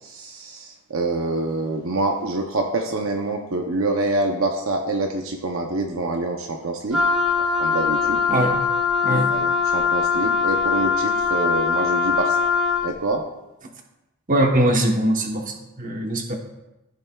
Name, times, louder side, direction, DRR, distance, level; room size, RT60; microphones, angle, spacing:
voice 1, 0.0-7.0 7.4-8.2 9.3-12.4 12.8-13.2, right 2 dB, 60° right, 3 dB, 0.7 m, -26 dB
Wind instrument woodwind instrument, 6.9-12.9, left 5 dB, ahead, 1.9 m, -21 dB
voice 2, 8.3-8.6 9.0-9.4 14.3-16.3, right 1 dB, 35° right, 2 dB, 1.1 m, -21 dB
15.0 x 6.7 x 2.3 m, 0.97 s
head